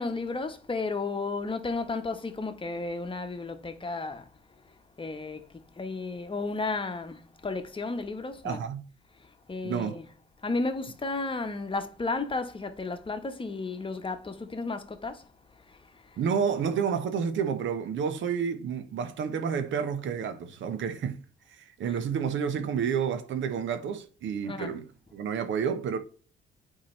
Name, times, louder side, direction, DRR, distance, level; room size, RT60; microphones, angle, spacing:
voice 1, 0.0-4.3 5.0-8.6 9.5-10.0 10.4-15.2 15.7-15.8 24.4-24.8, left 3 dB, 25° left, 1.2 m, -33 dB
voice 2, 8.4-8.8 9.6-10.0 16.2-21.2 21.7-26.0, right 7 dB, 70° right, 1.0 m, -30 dB
8.7 x 4.8 x 3.3 m
cardioid pair, 90°, 20 cm